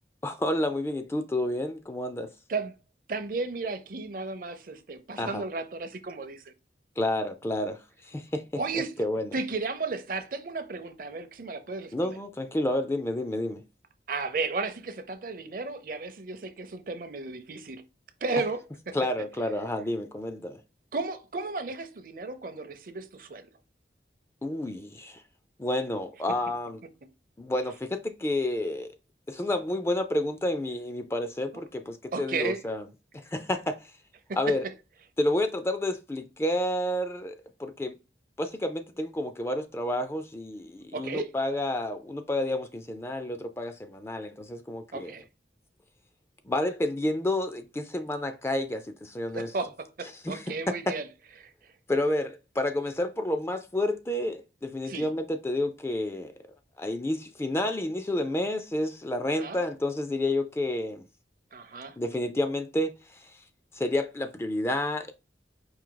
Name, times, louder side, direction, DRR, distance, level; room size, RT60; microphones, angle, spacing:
voice 1, 0.2-2.3 5.2-5.4 7.0-9.3 11.9-13.6 18.9-20.6 24.4-25.2 25.6-26.8 27.4-28.9 29.3-32.8 33.1-33.9 34.3-34.6 35.2-38.0 38.4-45.1 46.5-49.5 50.2-50.5 50.9-51.0 51.9-56.3 56.8-61.0 62.0-63.4 63.7-65.1, left 1 dB, 15° left, 0.3 m, -30 dB
voice 2, 3.1-6.5 8.5-8.9 9.3-12.1 14.1-17.8 18.2-18.6 18.9-19.0 20.9-23.5 32.1-32.6 34.3-34.6 40.9-41.3 44.9-45.3 49.3-51.1 51.4-51.5 54.9-55.1 59.4-59.6 61.5-62.0, right 3 dB, 50° right, 0.6 m, -34 dB
4.7 x 2.7 x 3.8 m
head